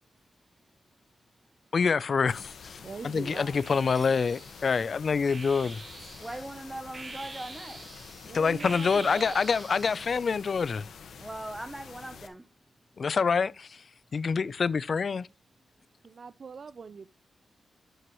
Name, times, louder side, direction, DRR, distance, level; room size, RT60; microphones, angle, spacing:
voice 1, 1.7-5.8 8.3-10.9 13.0-13.8 14.1-15.3, left 5 dB, 55° left, 0.4 m, -26 dB
sound 1, 2.2-3.0 3.6-10.3, right 3 dB, 40° right, 1.1 m, -46 dB
sound 2, 2.3-12.3, left 6 dB, 85° left, 1.3 m, -48 dB
voice 2, 2.8-3.6 8.2-9.4 16.0-17.1, right 5 dB, 60° right, 0.4 m, -42 dB
voice 3, 6.2-8.1 11.2-12.5, right 1 dB, 15° right, 0.7 m, -41 dB
12.0 x 7.9 x 3.0 m
cardioid pair, 75°, 0 cm